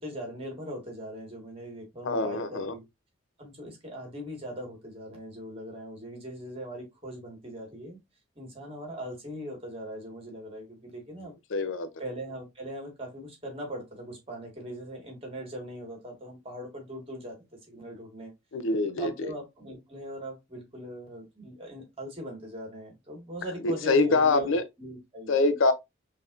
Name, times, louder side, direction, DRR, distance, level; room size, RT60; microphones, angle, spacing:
voice 1, 0.0-2.8 3.4-8.0 8.3-11.3 12.0-17.4 17.7-18.3 19.0-25.4, equal, 30° right, 1.6 m, -40 dB
voice 2, 2.0-2.7 11.5-11.9 18.5-19.1 23.6-24.6 25.3-25.7, left 3 dB, 75° left, 0.5 m, -24 dB
5.5 x 2.8 x 2.4 m
head